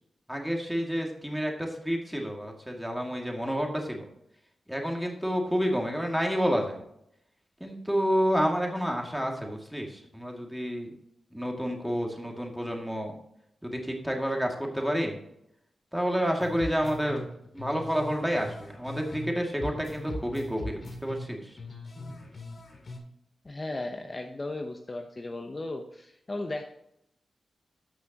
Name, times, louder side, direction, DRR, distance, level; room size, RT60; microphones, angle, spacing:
voice 1, 0.3-4.0 4.7-6.8 7.6-10.9 11.3-13.1 13.6-15.2 15.9-17.3 17.5-21.5, equal, 5° right, 1 dB, 2.3 m, -29 dB
sound 1, 16.4-19.3 19.6-23.0, left 2 dB, 50° left, 2.2 m, -40 dB
voice 2, 23.4-26.6, left 2 dB, 35° left, 4 dB, 0.9 m, -36 dB
12.5 x 6.1 x 3.0 m, 0.78 s
cardioid pair, 65°, 0 cm